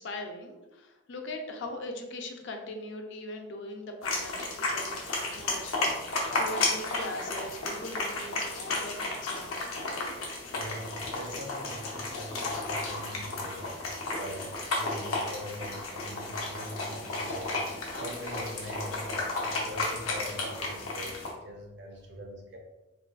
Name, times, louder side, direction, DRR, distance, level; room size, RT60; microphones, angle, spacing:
voice 1, 0.0-5.0 5.3-10.2, left 1 dB, 55° left, 3 dB, 0.4 m, -40 dB
sound 1, 4.0-21.3, left 2 dB, 85° left, 0.7 m, -33 dB
voice 2, 10.5-13.8 14.1-22.6, equal, 55° right, 1 dB, 0.5 m, -42 dB
3.7 x 2.2 x 2.3 m, 1.1 s
head